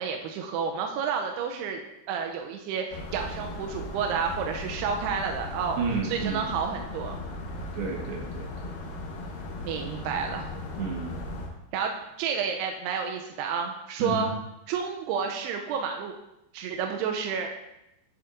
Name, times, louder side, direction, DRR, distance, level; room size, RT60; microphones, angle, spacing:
voice 1, 0.0-1.8 2.1-5.8 6.1-7.2 9.6-10.5 11.7-14.3 14.7-16.1 16.5-17.5, right 6 dB, 85° right, 3 dB, 2.4 m, -30 dB
sound 1, 2.9-11.5, left 2 dB, 70° left, 2.3 m, -37 dB
voice 2, 5.8-6.5 7.7-8.7 10.8-11.2 14.0-14.3, right 4 dB, 70° right, -1 dB, 3.2 m, -31 dB
10.0 x 7.1 x 2.5 m, 0.88 s
omnidirectional pair, 5.2 m